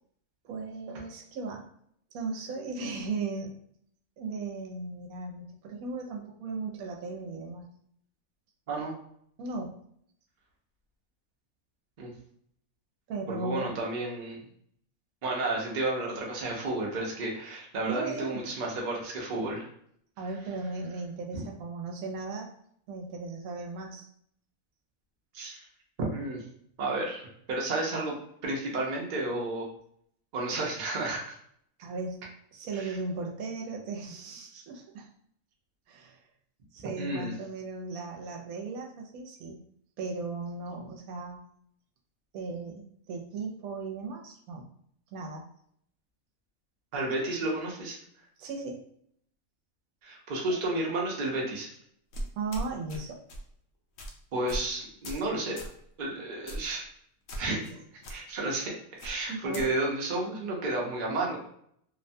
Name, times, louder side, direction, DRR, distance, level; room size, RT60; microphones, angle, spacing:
voice 1, 0.4-1.6 2.1-3.5 4.2-7.7 9.4-9.7 13.1-13.7 17.9-18.4 20.2-22.5 22.9-24.1 31.8-32.2 32.5-35.1 35.9-36.2 36.7-39.6 40.0-41.4 42.3-44.7 45.1-45.4 48.4-48.8 52.4-53.2 59.3-59.7, right 3 dB, 80° right, 1 dB, 1.0 m, -36 dB
voice 2, 13.3-14.4 15.2-19.7 21.3-21.4 25.3-25.6 26.1-26.4 26.8-28.2 28.4-29.6 30.3-31.4 32.7-33.0 37.0-37.3 46.9-48.0 50.0-51.7 54.3-55.6 56.0-56.8 57.4-58.7 59.0-61.4, right 2 dB, 50° right, -2 dB, 0.6 m, -32 dB
sound 1, 52.1-53.0 53.3-53.5 54.0-54.1 54.5-54.7 55.0-55.3 55.6-55.8 56.5-56.7 57.3-57.7 58.0-58.1 59.0-59.7, right 1 dB, 70° left, 0.9 m, -37 dB
2.8 x 2.1 x 2.6 m, 0.66 s
omnidirectional pair, 1.5 m